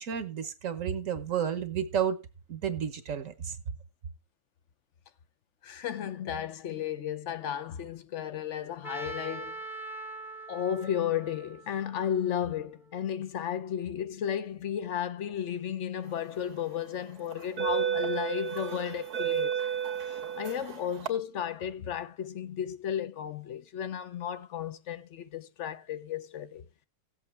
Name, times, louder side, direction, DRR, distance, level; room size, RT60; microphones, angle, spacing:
voice 1, 0.0-2.2 2.5-3.6, right 8 dB, 60° right, 1.3 m, -31 dB
voice 2, 5.6-9.7 10.5-19.6 20.1-26.6, left 9 dB, 60° left, 0.9 m, -34 dB
Trumpet, 8.8-12.9, right 2 dB, ahead, 0.8 m, -43 dB
sound 1, 16.3-16.5 17.3-21.1, right 8 dB, 85° right, 1.9 m, -32 dB
16.5 x 7.7 x 3.2 m
omnidirectional pair, 1.6 m